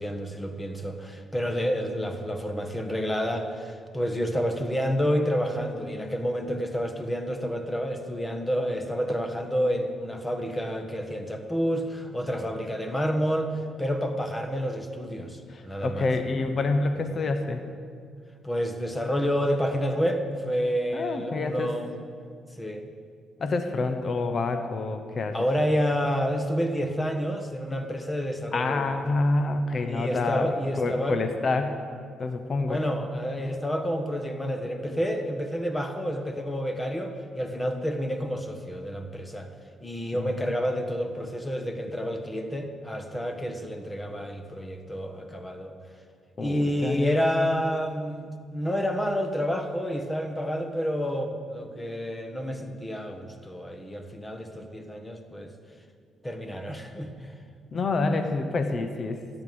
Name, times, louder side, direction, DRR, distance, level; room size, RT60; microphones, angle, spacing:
voice 1, 0.0-16.1 18.4-21.9 22.6-22.9 25.3-29.0 29.8-31.2 32.6-39.5 39.8-45.7 46.4-55.5 56.2-57.3, equal, 15° left, 5 dB, 1.5 m, -29 dB
voice 2, 15.5-17.6 20.9-21.8 23.4-25.4 28.5-31.8 32.2-32.8 40.1-40.5 46.4-47.1 57.7-59.2, left 3 dB, 45° left, 7 dB, 1.0 m, -27 dB
13.5 x 9.3 x 7.1 m, 2.2 s
cardioid pair, 90°, 0 cm